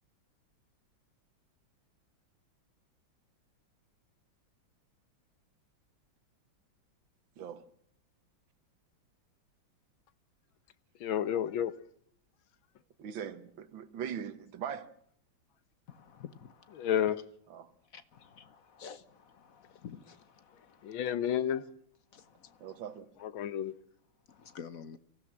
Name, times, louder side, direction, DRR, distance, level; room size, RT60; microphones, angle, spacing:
voice 1, 7.4-7.7 13.0-14.9 17.5-17.7 22.6-23.1, right 8 dB, 75° right, 2.0 m, -41 dB
voice 2, 11.0-11.7 16.8-17.2 20.8-21.6 23.2-23.7, left 9 dB, 85° left, 1.8 m, -30 dB
voice 3, 15.9-16.9 17.9-21.0 22.1-22.8 24.3-25.0, left 7 dB, 50° left, 1.3 m, -50 dB
24.0 x 15.5 x 7.4 m
omnidirectional pair, 2.1 m